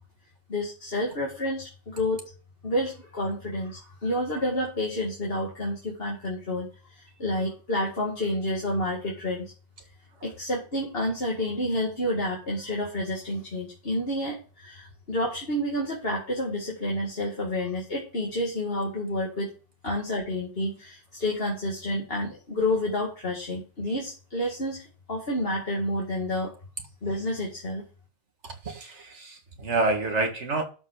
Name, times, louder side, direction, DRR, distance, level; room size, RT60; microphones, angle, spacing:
voice 1, 0.5-2.2 2.6-9.5 10.2-19.5 19.8-26.6 27.0-27.9, left 1 dB, 30° left, -2 dB, 2.3 m, -29 dB
voice 2, 28.4-30.6, right 3 dB, 35° right, 4 dB, 2.0 m, -28 dB
12.5 x 5.5 x 4.9 m, 0.36 s
omnidirectional pair, 2.1 m